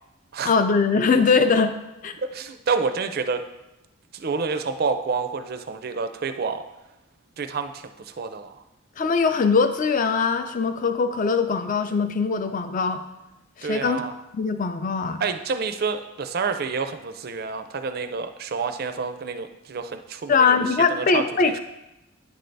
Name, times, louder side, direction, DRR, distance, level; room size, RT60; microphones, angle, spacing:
voice 1, 0.4-1.7 2.0-2.2 9.0-13.0 13.6-14.1 14.3-15.2 20.3-21.6, left 5 dB, 40° left, 9 dB, 0.4 m, -21 dB
voice 2, 2.3-3.4 4.1-6.6 7.4-8.6 13.6-14.1 15.2-20.6 20.9-21.5, right 5 dB, 45° right, 9 dB, 0.4 m, -28 dB
9.9 x 3.3 x 3.9 m, 0.95 s
head